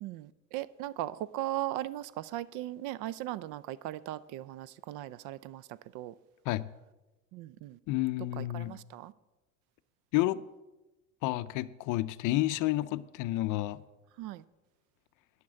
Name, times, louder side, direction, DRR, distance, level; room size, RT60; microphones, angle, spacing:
voice 1, 0.0-6.2 7.3-7.8 8.4-9.1 14.2-14.4, right 14 dB, 50° right, 0.5 m, -38 dB
voice 2, 7.9-8.8 10.1-10.4 11.2-13.8, left 16 dB, 50° left, 0.5 m, -30 dB
10.5 x 5.8 x 7.4 m
hypercardioid pair, 75°, 41 cm